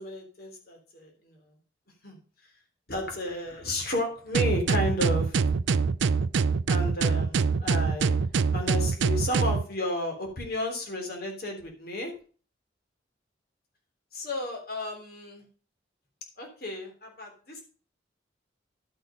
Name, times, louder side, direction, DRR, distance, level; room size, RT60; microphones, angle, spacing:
voice 1, 0.0-1.4 2.0-2.2 2.9-5.6 6.7-8.2 8.5-12.1 14.1-15.4 16.4-17.6, left 1 dB, 55° left, 2 dB, 3.3 m, -33 dB
sound 1, 4.3-9.6, right 5 dB, 85° right, 0.5 m, -24 dB
11.5 x 6.3 x 5.1 m, 0.39 s
head